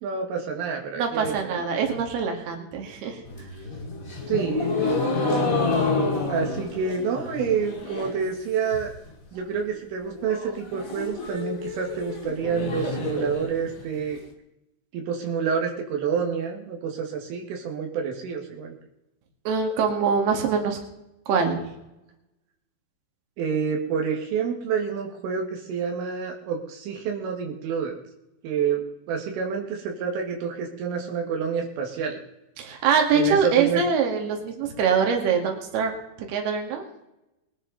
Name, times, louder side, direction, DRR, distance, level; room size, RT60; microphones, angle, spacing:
voice 1, 0.0-1.6 4.3-4.9 6.3-8.9 9.3-14.2 14.9-18.8 23.4-28.0 28.4-32.2 33.1-33.8, right 6 dB, 80° right, 1 dB, 4.5 m, -28 dB
voice 2, 1.0-3.2 19.5-20.8 21.3-21.6 32.6-35.9 36.3-36.9, right 6 dB, 60° right, 2 dB, 3.9 m, -23 dB
sound 1, 3.2-8.3 8.6-9.1 9.4-9.5 9.8-9.9 10.2-14.2, left 3 dB, 30° left, 1.6 m, -29 dB
22.0 x 10.5 x 4.1 m, 0.88 s
omnidirectional pair, 5.6 m